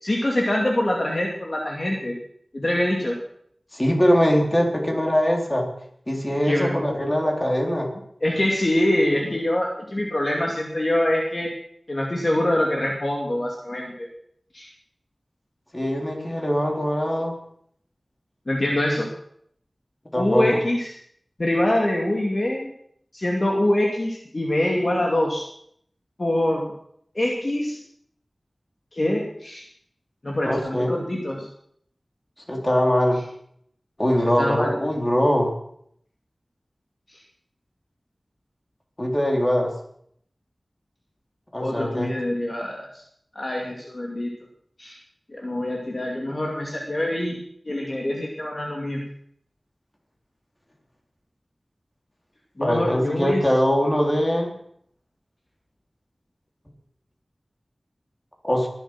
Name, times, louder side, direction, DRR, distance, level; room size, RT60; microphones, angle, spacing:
voice 1, 0.0-2.2 2.5-3.2 6.4-6.8 8.2-11.5 11.9-14.1 14.5-14.7 18.5-19.1 20.1-20.9 21.4-22.7 23.1-25.5 26.2-26.7 27.1-27.8 28.9-29.6 30.2-31.5 34.4-34.7 37.1-37.2 41.6-43.0 43.3-44.3 44.8-45.0 45.3-47.4 47.6-49.0 52.6-53.4, left 1 dB, 45° left, -1 dB, 2.6 m, -24 dB
voice 2, 3.7-5.7 6.1-7.9 15.7-17.4 20.1-20.6 30.4-31.0 32.5-33.2 34.0-35.5 39.0-39.7 41.5-42.1 52.6-54.5 58.4-58.7, equal, 20° left, 0 dB, 3.8 m, -22 dB
22.0 x 8.1 x 6.0 m, 0.67 s
wide cardioid pair, 70°, 0 cm